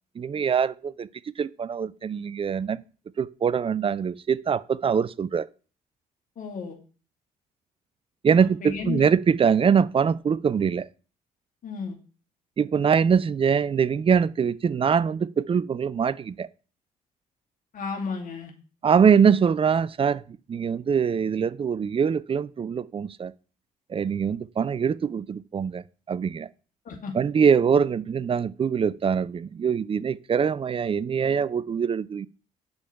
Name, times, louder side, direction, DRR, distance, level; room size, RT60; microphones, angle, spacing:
voice 1, 0.2-2.8 3.2-5.5 8.2-10.9 12.6-16.5 18.8-20.2 20.5-23.3 23.9-26.5 27.1-32.3, right 6 dB, 30° right, 0.5 m, -23 dB
voice 2, 6.4-6.8 8.4-9.1 11.6-12.0 17.7-18.5 26.9-27.1, left 5 dB, 45° left, 2.5 m, -33 dB
9.6 x 6.2 x 5.4 m
figure-of-eight pair, 45°, 19 cm